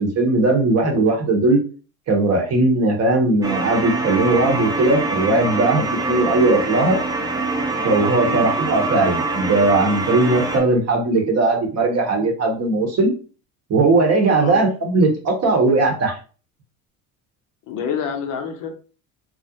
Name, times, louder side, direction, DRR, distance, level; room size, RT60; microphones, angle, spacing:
voice 1, 0.0-1.6 2.1-7.0 7.8-13.1 13.7-16.2, right 2 dB, 35° right, 2 dB, 0.9 m, -18 dB
sound 1, 3.4-10.6, right 3 dB, 10° right, 0.4 m, -24 dB
voice 2, 17.7-18.7, left 7 dB, 45° left, 5 dB, 0.6 m, -27 dB
2.4 x 2.0 x 2.7 m, 0.37 s
supercardioid pair, 90°, 44 cm